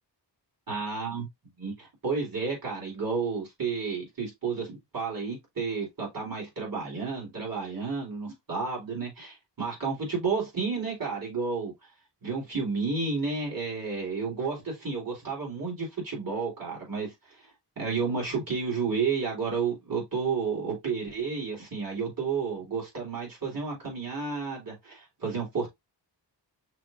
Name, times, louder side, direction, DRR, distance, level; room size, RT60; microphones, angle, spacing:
voice 1, 0.7-1.3 1.6-11.7 12.2-17.1 17.8-25.7, right 5 dB, 50° right, 3.5 m, -31 dB
5.9 x 3.5 x 2.5 m
wide cardioid pair, 115°, 43 cm